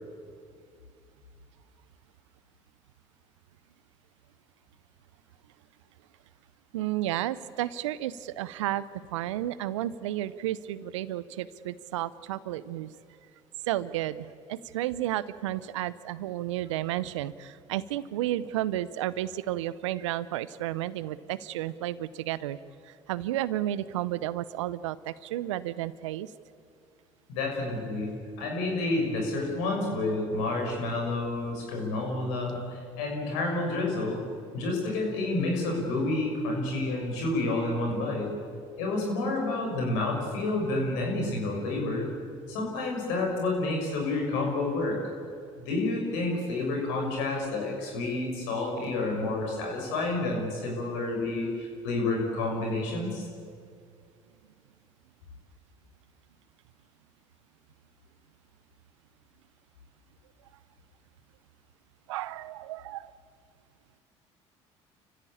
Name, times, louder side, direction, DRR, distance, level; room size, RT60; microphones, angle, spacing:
voice 1, 6.7-8.9 9.1-12.9 13.7-22.6 22.8-26.3 62.1-63.1, right 13 dB, 80° right, 17 dB, 0.8 m, -32 dB
voice 2, 27.3-28.1 28.4-34.2 34.5-38.3 38.8-42.1 42.5-45.0 45.6-53.3, left 2 dB, 75° left, 1 dB, 6.5 m, -29 dB
29.5 x 15.5 x 8.8 m, 2.3 s
hypercardioid pair, 55°, 15 cm